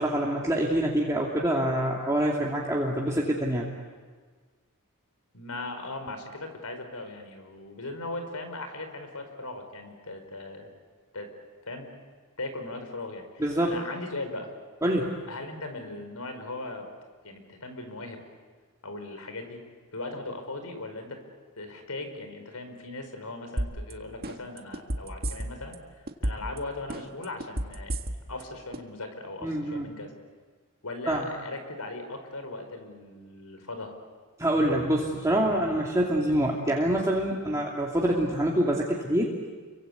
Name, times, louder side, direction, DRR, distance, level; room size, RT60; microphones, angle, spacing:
voice 1, 0.0-3.7 13.4-13.8 14.8-15.1 29.4-29.9 31.1-31.2 34.4-39.3, right 1 dB, 15° right, -3 dB, 2.7 m, -26 dB
voice 2, 5.3-10.7 11.1-11.3 11.6-11.9 12.4-14.5 15.3-16.9 17.2-18.2 18.8-19.6 19.9-21.2 21.5-30.1 30.8-34.0 37.4-37.6, left 2 dB, 85° left, 7 dB, 4.9 m, -38 dB
sound 1, 23.6-23.9 24.2-25.7 26.1-26.6 26.9-28.4 28.7-28.8, right 1 dB, 45° right, 1.7 m, -30 dB
29.5 x 24.0 x 8.4 m, 1.5 s
head